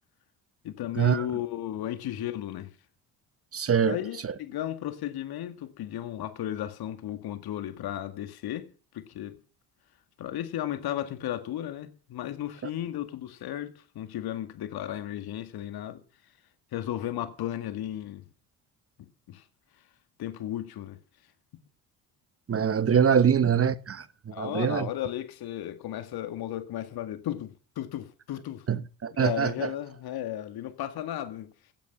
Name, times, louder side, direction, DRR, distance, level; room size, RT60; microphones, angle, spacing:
voice 1, 0.6-2.7 3.9-8.7 8.9-9.4 10.2-16.0 16.7-18.2 19.3-19.4 20.2-21.0 24.3-28.6 29.1-31.5, left 12 dB, 50° left, 2.0 m, -34 dB
voice 2, 3.5-4.0 4.2-4.3 22.5-24.9 28.7-29.7, right 7 dB, 30° right, 1.3 m, -24 dB
15.5 x 10.5 x 5.8 m
figure-of-eight pair, 50°, 46 cm